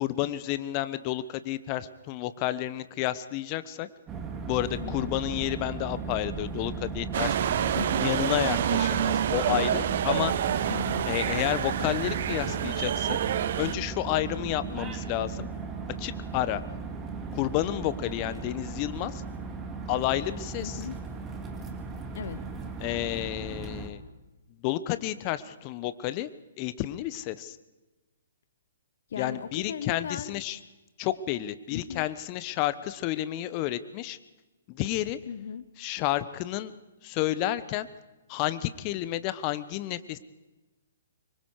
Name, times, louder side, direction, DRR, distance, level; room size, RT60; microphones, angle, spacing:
voice 1, 0.0-3.9 4.5-7.4 8.0-10.3 11.1-13.2 13.6-15.5 16.0-16.6 17.3-19.2 19.9-20.8 22.8-24.0 24.6-26.3 26.6-27.6 29.2-30.6 31.0-34.2 34.7-35.2 35.8-36.8 37.0-37.9 38.3-40.2, left 14 dB, 35° left, 14 dB, 1.1 m, -30 dB
sound 1, 4.1-23.9, right 4 dB, 20° right, 2.6 m, -37 dB
voice 2, 4.8-5.2 7.6-8.0 10.7-11.1 20.6-21.1 22.1-22.5 29.1-30.4 31.7-32.1 35.3-35.7, left 7 dB, 60° left, 14 dB, 0.9 m, -37 dB
sound 2, 7.1-13.7, right 9 dB, 50° right, 1.0 m, -28 dB
25.5 x 23.5 x 4.9 m, 1.1 s
figure-of-eight pair, 125°, 0 cm